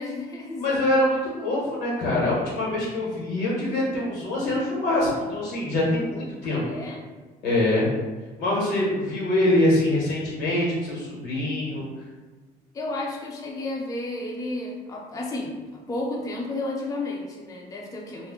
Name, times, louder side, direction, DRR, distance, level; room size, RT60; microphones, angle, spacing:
voice 1, 0.0-0.8 6.6-7.0 12.7-18.3, left 2 dB, 20° left, -1 dB, 0.4 m, -32 dB
voice 2, 0.6-6.6 7.4-7.9 8.4-11.9, left 1 dB, 80° left, -4 dB, 1.1 m, -24 dB
2.3 x 2.0 x 3.6 m, 1.3 s
cardioid pair, 110°, 17 cm